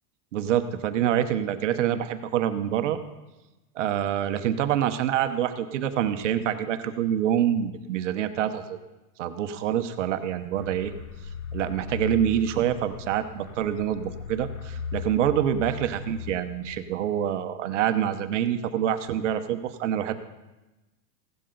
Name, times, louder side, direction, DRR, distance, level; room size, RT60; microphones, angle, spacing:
voice 1, 0.3-3.0 3.7-8.8 9.2-10.9 11.5-20.1, right 10 dB, 50° right, 9 dB, 0.9 m, -26 dB
sound 1, 10.5-17.0, left 6 dB, 55° left, 1.3 m, -38 dB
16.0 x 12.0 x 3.9 m, 1.1 s
supercardioid pair, 175°, 48 cm